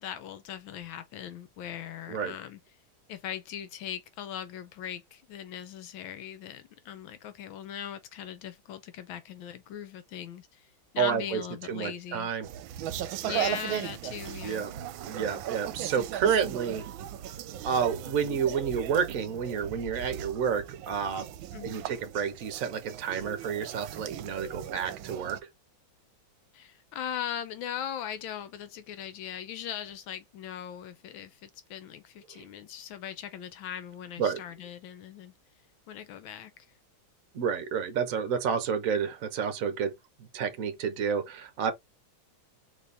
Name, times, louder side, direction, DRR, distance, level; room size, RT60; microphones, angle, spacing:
voice 1, 0.0-2.6 3.1-10.7 10.9-12.3 13.2-14.7 21.5-21.9 26.5-35.3 35.9-36.5, left 10 dB, 80° left, 1.4 m, -39 dB
voice 2, 11.0-11.4 11.7-12.5 13.2-13.5 14.4-14.7 15.0-16.9 17.6-21.3 21.6-25.4 32.3-32.4 34.2-34.4 37.3-39.9 40.2-41.7, right 7 dB, 50° right, 1.1 m, -30 dB
sound 1, 12.4-25.4, right 11 dB, 80° right, 1.3 m, -38 dB
4.1 x 3.3 x 3.3 m
omnidirectional pair, 2.2 m